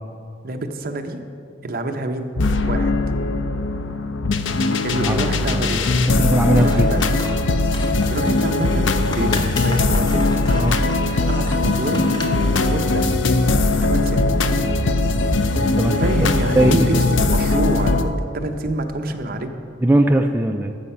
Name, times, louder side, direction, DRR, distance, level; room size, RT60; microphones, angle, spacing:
voice 1, 0.4-1.2 1.6-2.4 2.7-2.9 4.8-5.8 6.6-7.1 8.1-10.2 11.0-12.2 12.5-13.1 13.8-14.4 16.0-19.5, right 1 dB, 50° right, 5 dB, 0.8 m, -27 dB
sound 1, 2.4-18.0, left 2 dB, 70° left, 0.6 m, -20 dB
voice 2, 6.2-7.1 10.5-10.8 15.7-16.3 16.6-16.9 19.8-20.8, right 1 dB, 10° right, 4 dB, 0.3 m, -19 dB
Scissors, 6.5-12.6, left 2 dB, 20° left, 0.7 m, -36 dB
sound 2, 9.9-15.8, equal, 45° left, 1.4 m, -33 dB
12.5 x 7.3 x 5.6 m, 2.5 s
head